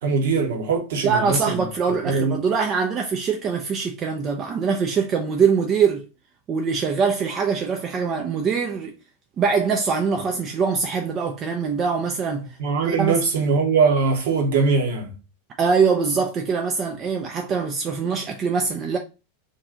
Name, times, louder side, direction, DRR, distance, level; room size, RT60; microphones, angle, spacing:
voice 1, 0.0-2.4 12.6-15.1, right 4 dB, 55° right, 0.8 m, -22 dB
voice 2, 1.0-6.1 6.5-8.9 9.4-12.6 12.9-13.2 15.6-19.0, right 5 dB, 30° right, 0.4 m, -23 dB
2.6 x 2.3 x 3.6 m
figure-of-eight pair, 90°, 0 cm